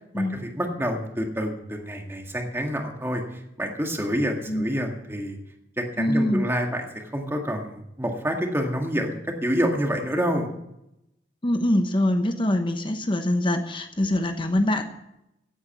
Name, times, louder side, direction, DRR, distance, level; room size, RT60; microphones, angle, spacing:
voice 1, 0.1-3.2 3.6-5.4 5.8-10.5, equal, 15° right, 2 dB, 1.9 m, -27 dB
voice 2, 6.0-6.4 11.4-14.8, left 1 dB, 30° left, 7 dB, 1.0 m, -23 dB
16.0 x 8.9 x 7.4 m, 0.85 s
head